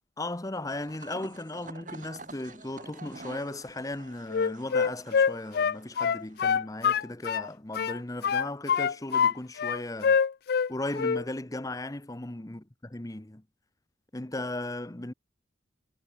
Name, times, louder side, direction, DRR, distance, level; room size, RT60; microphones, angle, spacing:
voice 1, 0.2-10.2 10.7-13.4 14.1-15.1, left 2 dB, 15° left, 0.8 m, -36 dB
sound 1, 0.8-6.6, right 3 dB, 40° right, 3.6 m, -48 dB
Wind instrument woodwind instrument, 4.3-7.5 7.8-9.3 9.6-10.7 11.0-11.2, left 6 dB, 50° left, 0.3 m, -25 dB
head